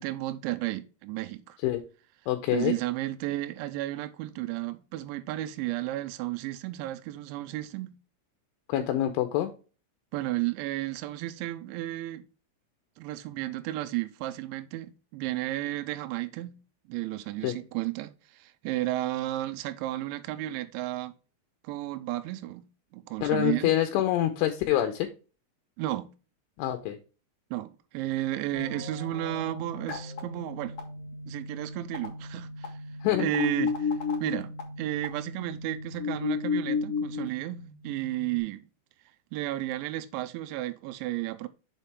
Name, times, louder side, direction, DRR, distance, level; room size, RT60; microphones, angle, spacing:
voice 1, 0.0-1.6 2.5-8.0 10.1-12.2 13.0-16.6 16.9-21.1 21.6-22.7 22.9-23.8 25.8-26.1 27.5-30.8 31.3-32.8 33.2-33.9 34.2-38.6 39.3-41.5, right 16 dB, 90° right, 2.6 m, -33 dB
voice 2, 2.3-2.8 8.7-9.5 17.4-17.6 23.2-25.1 26.6-27.0 33.0-33.3, left 12 dB, 80° left, 3.0 m, -26 dB
sound 1, 28.5-38.4, left 4 dB, 65° left, 1.5 m, -34 dB
7.1 x 5.7 x 3.4 m
omnidirectional pair, 5.9 m